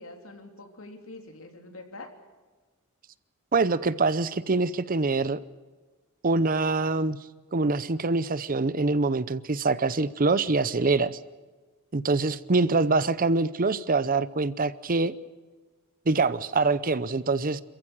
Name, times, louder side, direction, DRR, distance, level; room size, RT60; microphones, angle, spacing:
voice 1, 0.0-2.1, left 2 dB, 65° left, 4 dB, 3.6 m, -44 dB
voice 2, 3.5-5.4 6.2-7.2 7.5-11.2 11.9-15.1 16.1-17.6, right 3 dB, 40° right, 16 dB, 0.7 m, -24 dB
27.0 x 15.0 x 8.9 m, 1.3 s
head